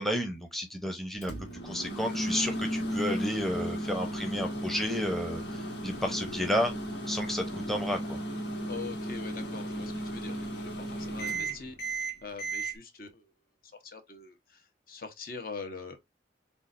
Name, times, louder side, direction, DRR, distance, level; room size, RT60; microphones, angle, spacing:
voice 1, 0.0-1.3 1.6-6.7 7.1-8.2, equal, ahead, 0.8 m, -32 dB
Microwave oven, 1.2-12.7, right 1 dB, 75° left, 1.8 m, -35 dB
voice 2, 8.7-13.3 13.8-16.0, left 4 dB, 50° left, 1.0 m, -43 dB
7.0 x 2.4 x 2.6 m
head